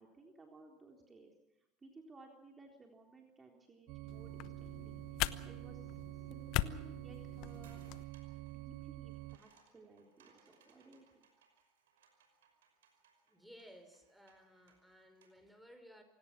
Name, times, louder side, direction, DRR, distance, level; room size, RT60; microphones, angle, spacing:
voice 1, 0.0-7.8 8.4-11.3, right 3 dB, 20° right, 2 dB, 3.8 m, -59 dB
sound 1, 3.9-9.4, right 18 dB, 60° right, 0.7 m, -47 dB
sound 2, 4.1-8.0, left 17 dB, 60° left, 0.9 m, -41 dB
sound 3, 7.3-15.5, right 6 dB, 85° right, 5.6 m, -70 dB
voice 2, 13.3-16.0, equal, ahead, 6 dB, 5.3 m, -58 dB
26.5 x 18.5 x 6.1 m, 0.93 s
hypercardioid pair, 90°, 0 cm